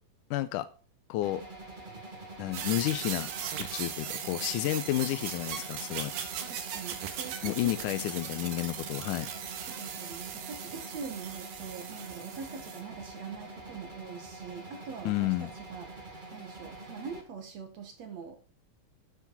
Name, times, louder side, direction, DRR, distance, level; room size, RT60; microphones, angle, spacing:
voice 1, 0.3-0.7 1.1-1.4 2.4-3.3 3.6-6.1 7.4-9.3 15.1-15.5, left 16 dB, 80° left, 1.9 m, -31 dB
sound 1, 1.2-17.2, right 2 dB, 20° right, 1.5 m, -45 dB
sound 2, 2.5-12.8, right 8 dB, 70° right, 3.0 m, -39 dB
voice 2, 6.5-7.9 9.6-18.5, right 6 dB, 55° right, 2.3 m, -44 dB
10.5 x 8.3 x 4.1 m
omnidirectional pair, 4.2 m